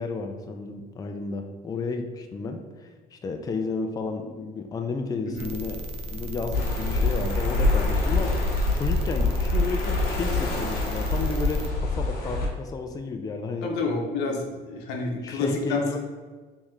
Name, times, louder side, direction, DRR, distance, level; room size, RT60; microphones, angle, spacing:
voice 1, 0.0-8.4 8.7-13.7 15.1-16.0, left 4 dB, 20° left, 5 dB, 0.4 m, -32 dB
sound 1, 5.3-11.7, equal, 40° right, 0.4 m, -33 dB
sound 2, 6.5-12.5, left 2 dB, 65° left, 0.9 m, -25 dB
voice 2, 13.6-16.0, left 3 dB, 90° left, 2 dB, 0.7 m, -29 dB
3.2 x 3.0 x 3.6 m, 1.4 s
cardioid pair, 110°, 17 cm